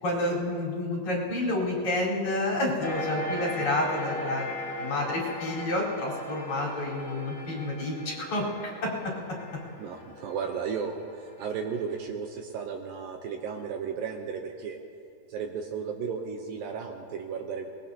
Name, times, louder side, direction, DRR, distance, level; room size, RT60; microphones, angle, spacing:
voice 1, 0.0-4.5 4.8-8.9, left 1 dB, 50° left, -6 dB, 5.6 m, -29 dB
sound 1, 2.8-11.8, left 1 dB, 90° left, 0.8 m, -38 dB
voice 2, 9.8-14.8 15.3-17.7, right 6 dB, 75° right, 3 dB, 2.4 m, -34 dB
24.0 x 21.0 x 2.8 m, 2.4 s
omnidirectional pair, 4.5 m